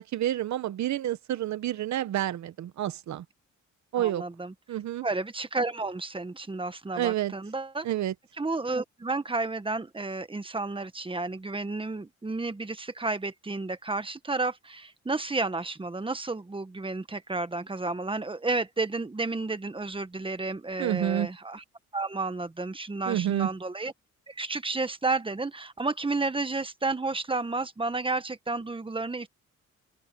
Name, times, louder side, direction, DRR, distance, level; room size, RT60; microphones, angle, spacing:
voice 1, 0.0-3.2 3.9-4.2 4.7-5.1 6.9-7.3 7.8-8.1 20.8-21.3 23.1-23.5, right 12 dB, 70° right, 1.0 m, -29 dB
voice 2, 4.0-4.5 5.0-7.9 8.4-21.6 21.9-23.9 24.3-29.3, right 3 dB, 15° right, 1.6 m, -31 dB
open air
cardioid pair, 90°, 30 cm